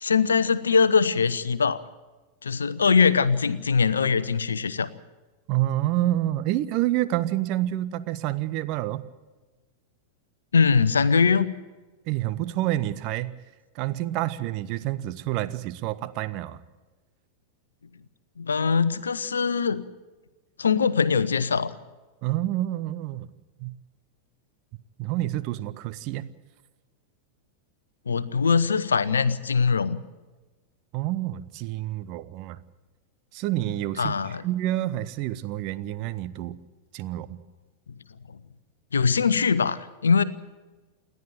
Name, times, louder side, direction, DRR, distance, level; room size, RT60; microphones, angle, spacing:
voice 1, 0.0-1.8 2.4-4.9 10.5-11.5 18.4-19.8 20.6-21.8 28.1-30.0 34.0-34.4 38.3-38.4 38.9-40.2, left 5 dB, 70° left, 15 dB, 0.8 m, -22 dB
voice 2, 5.5-9.0 12.1-13.3 13.7-16.6 22.2-23.3 23.6-23.7 25.0-26.3 30.9-32.6 33.3-36.6 36.9-37.4, right 14 dB, 40° right, 13 dB, 0.9 m, -28 dB
28.5 x 11.0 x 9.1 m, 1.2 s
figure-of-eight pair, 90°, 0 cm